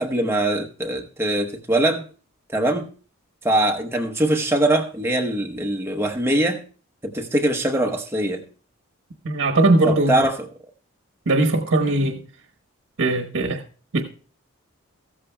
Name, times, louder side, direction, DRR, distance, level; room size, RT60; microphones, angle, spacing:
voice 1, 0.0-2.1 2.5-2.9 3.4-6.6 7.0-8.4 9.8-10.4, right 1 dB, 10° right, 0.8 m, -22 dB
voice 2, 9.2-10.2 11.3-12.2 13.0-13.6 13.9-14.0, right 2 dB, 75° right, 1.0 m, -19 dB
14.5 x 14.0 x 2.2 m
head